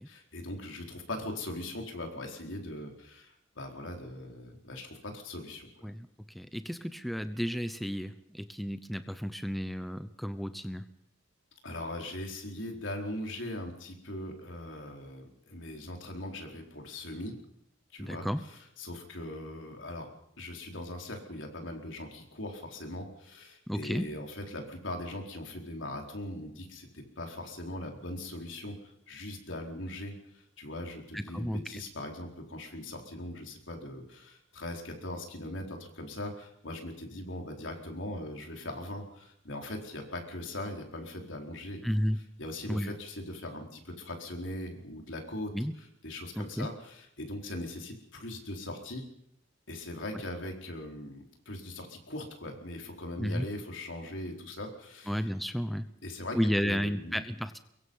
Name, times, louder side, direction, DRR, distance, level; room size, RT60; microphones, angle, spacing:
voice 1, 0.0-5.7 11.6-17.3 17.9-20.1 20.4-41.8 42.4-45.5 46.0-49.0 49.7-55.3 56.0-57.2, left 1 dB, 70° left, 2 dB, 4.4 m, -40 dB
voice 2, 6.3-10.8 18.0-18.4 23.7-24.1 31.1-31.6 41.8-42.2 42.7-42.9 45.5-45.7 46.4-46.7 53.2-53.4 55.1-55.9 56.3-57.6, equal, ahead, 10 dB, 0.8 m, -32 dB
23.0 x 22.5 x 5.6 m, 0.74 s
head